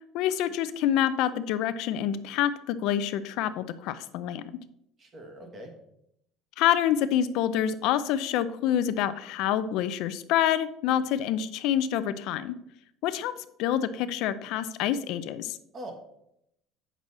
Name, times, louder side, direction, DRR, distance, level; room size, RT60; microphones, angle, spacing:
voice 1, 0.1-4.4 6.6-12.6 13.0-15.6, left 10 dB, 65° left, 12 dB, 0.5 m, -27 dB
voice 2, 5.0-5.7 15.7-15.9, right 1 dB, 30° right, 4 dB, 1.6 m, -42 dB
8.2 x 6.0 x 4.2 m, 0.76 s
cardioid pair, 160°, 0 cm